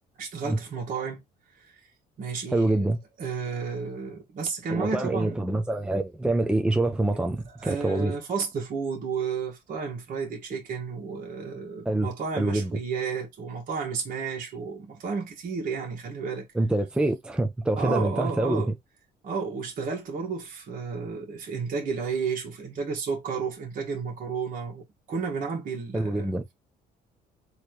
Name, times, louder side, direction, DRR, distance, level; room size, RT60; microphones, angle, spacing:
voice 1, 0.2-1.2 1.6-1.8 2.2-2.8 3.2-5.4 7.6-16.5 17.8-18.7 19.2-26.3, right 5 dB, 55° right, 1.6 m, -32 dB
voice 2, 2.5-3.0 4.7-8.2 11.9-12.1 12.4-12.8 16.5-18.6 25.9-26.4, right 2 dB, 5° right, 0.6 m, -25 dB
4.1 x 3.1 x 3.2 m
cardioid pair, 110°, 17 cm